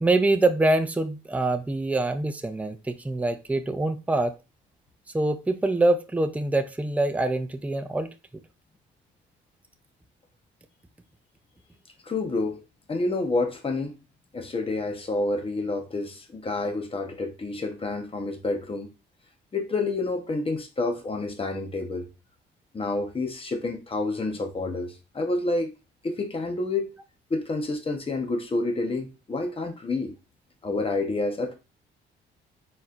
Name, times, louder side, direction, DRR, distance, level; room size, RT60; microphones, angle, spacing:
voice 1, 0.0-4.3 5.1-8.1, right 2 dB, 5° right, 0.5 m, -24 dB
voice 2, 12.0-12.6 12.9-13.9 14.3-18.9 19.5-22.1 22.7-25.7 26.0-26.9 27.3-30.1 30.6-31.5, left 2 dB, 30° left, 1.1 m, -28 dB
4.2 x 4.2 x 2.5 m
cardioid pair, 90°, 20 cm